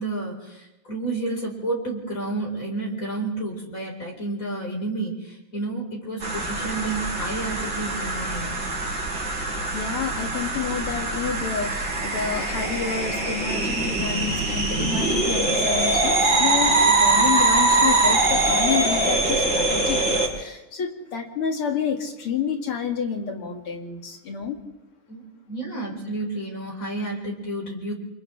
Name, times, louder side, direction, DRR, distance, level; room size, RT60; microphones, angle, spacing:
voice 1, 0.0-8.7 25.1-27.9, right 2 dB, 35° left, -2 dB, 5.2 m, -31 dB
sound 1, 6.2-20.3, right 2 dB, 45° right, 4.7 m, -23 dB
voice 2, 9.7-24.6, left 7 dB, 90° left, 2 dB, 3.2 m, -29 dB
29.0 x 27.5 x 3.4 m, 0.96 s
omnidirectional pair, 2.4 m